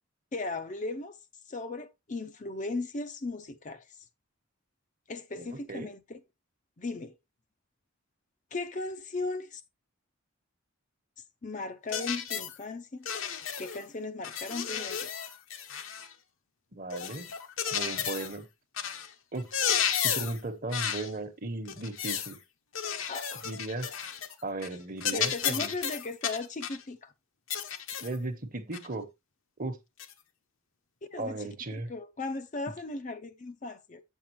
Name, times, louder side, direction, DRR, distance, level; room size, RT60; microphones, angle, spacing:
voice 1, 0.3-1.2 1.5-4.0 5.1-6.2 6.8-7.2 8.5-9.6 11.4-13.1 13.6-15.1 23.1-23.4 25.1-27.1 31.1-34.0, left 3 dB, 35° left, 0.5 m, -37 dB
voice 2, 5.3-5.9 16.7-17.3 17.7-18.5 19.3-19.5 20.0-22.4 23.4-23.9 24.4-25.7 28.0-29.1 29.6-29.8 31.2-31.9, right 2 dB, 40° right, 1.1 m, -36 dB
sound 1, 11.9-12.6 13.0-13.8 14.2-16.1 16.9-18.4 18.8-19.1 19.4-20.4 20.7-21.1 21.7-22.3 22.7-24.3 24.6-24.8 25.0-26.8 27.5-28.2 28.7-28.9 30.0-30.1, left 8 dB, 70° left, 1.0 m, -33 dB
7.9 x 7.3 x 3.0 m
head